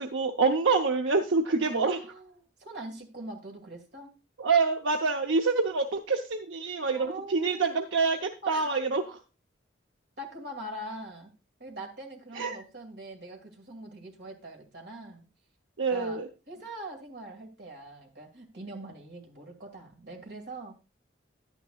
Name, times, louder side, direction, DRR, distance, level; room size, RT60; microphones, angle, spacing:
voice 1, 0.0-2.0 4.4-9.2 12.3-12.6 15.8-16.3, right 4 dB, 85° right, 3 dB, 0.7 m, -26 dB
voice 2, 1.6-4.1 6.9-7.8 8.4-8.7 10.2-11.3 11.6-15.2 15.9-16.2 16.5-20.7, right 1 dB, 60° right, 2 dB, 2.2 m, -43 dB
11.0 x 9.2 x 2.3 m, 0.30 s
head